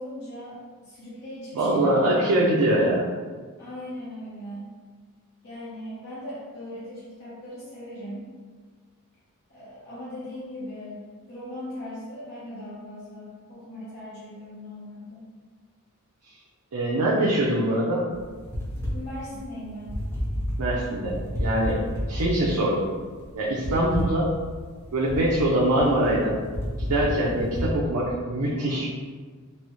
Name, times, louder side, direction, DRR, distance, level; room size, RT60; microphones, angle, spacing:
voice 1, 0.0-2.4 3.6-4.7 5.4-8.3 9.5-15.3 18.9-20.0, left 1 dB, 50° left, -10 dB, 0.9 m, -39 dB
voice 2, 1.5-3.1 16.7-18.0 20.6-21.8 22.1-22.9 23.3-24.3 24.9-26.4 26.8-28.9, right 1 dB, 85° right, -5 dB, 0.5 m, -23 dB
sound 1, 18.1-27.7, equal, 10° left, 0.9 m, -31 dB
4.1 x 2.0 x 3.0 m, 1.5 s
head